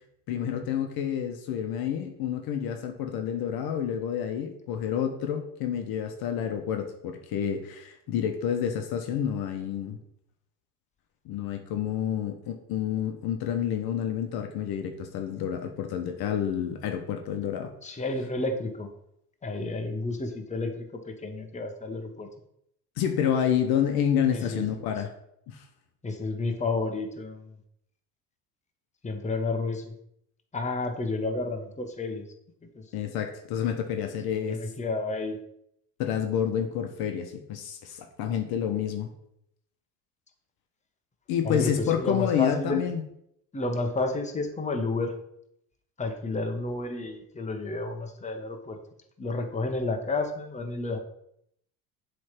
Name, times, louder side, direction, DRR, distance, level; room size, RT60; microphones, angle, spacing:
voice 1, 0.3-10.0 11.2-17.7 23.0-25.1 25.5-25.6 32.9-34.6 36.0-39.1 41.3-43.0, left 9 dB, 55° left, 5 dB, 1.0 m, -29 dB
voice 2, 17.8-18.9 19.4-22.3 24.3-24.9 26.0-27.5 29.0-29.9 30.5-32.2 32.7-32.8 34.3-35.4 41.4-42.8 43.5-45.1 46.0-48.8 49.2-51.0, left 3 dB, 15° left, 4 dB, 1.3 m, -31 dB
7.6 x 3.5 x 5.9 m, 0.75 s
hypercardioid pair, 70°, 44 cm